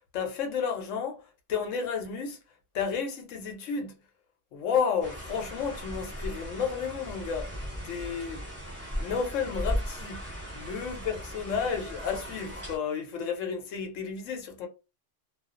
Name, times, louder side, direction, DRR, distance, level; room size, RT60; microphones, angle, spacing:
voice 1, 0.1-1.2 1.5-2.4 2.7-3.9 4.5-8.4 9.0-10.3 10.5-14.7, left 6 dB, 85° left, 1.0 m, -32 dB
sound 1, 5.0-12.8, equal, 10° right, 1.1 m, -37 dB
2.4 x 2.3 x 2.4 m
omnidirectional pair, 1.3 m